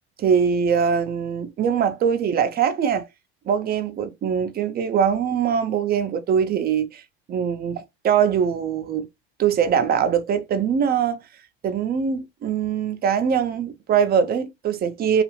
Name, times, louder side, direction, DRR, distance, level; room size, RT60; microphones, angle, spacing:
voice 1, 0.2-3.1 3.5-7.0 7.3-9.1 9.4-11.2 11.6-15.2, right 7 dB, 30° right, 0.5 m, -22 dB
2.6 x 2.4 x 2.9 m
hypercardioid pair, 90°, 32 cm